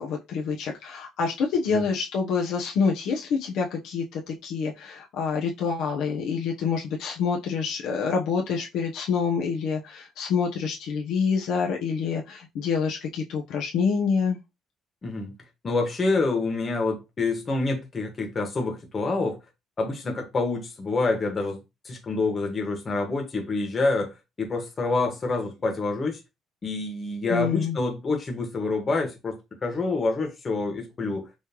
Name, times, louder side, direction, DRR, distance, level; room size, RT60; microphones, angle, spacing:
voice 1, 0.0-14.4 27.3-27.8, left 5 dB, 70° left, 0.9 m, -27 dB
voice 2, 15.0-15.3 15.6-19.4 19.8-21.6 21.8-26.2 26.6-29.4 29.6-31.3, left 3 dB, 30° left, 1.5 m, -27 dB
5.6 x 3.1 x 3.0 m
cardioid pair, 125°, 0 cm